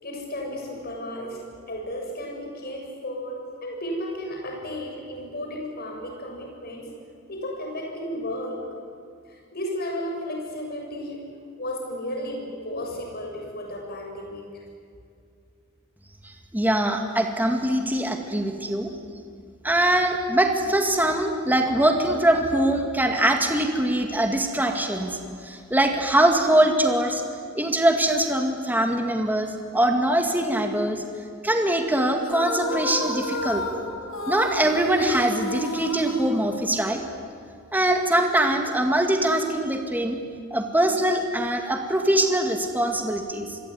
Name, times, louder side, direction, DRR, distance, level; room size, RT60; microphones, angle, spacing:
voice 1, 0.0-1.4 1.7-6.9 7.3-8.6 9.3-11.3 11.6-14.5, left 1 dB, 45° left, 1 dB, 7.3 m, -33 dB
voice 2, 16.5-19.0 19.6-27.2 27.6-31.0 31.4-33.6 34.3-37.0 37.7-40.2 40.5-43.6, right 1 dB, 10° right, 3 dB, 2.1 m, -22 dB
sound 1, 32.2-37.1, left 2 dB, 70° left, 3.8 m, -31 dB
27.5 x 22.0 x 9.7 m, 2.4 s
head